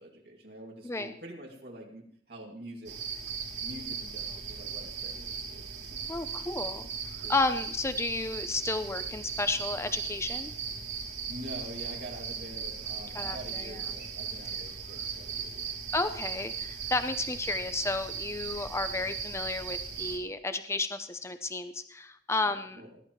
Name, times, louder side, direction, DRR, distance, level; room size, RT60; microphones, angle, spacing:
voice 1, 0.0-3.0 3.6-6.0 7.2-7.4 11.3-15.8 22.4-23.0, right 1 dB, 65° right, -1 dB, 2.3 m, -46 dB
sound 1, 2.8-20.2, right 6 dB, 80° right, 2.9 m, -38 dB
voice 2, 6.1-6.9 7.3-10.5 13.1-13.8 15.9-22.8, left 3 dB, 15° left, 10 dB, 0.6 m, -32 dB
20.0 x 12.0 x 3.1 m, 0.64 s
head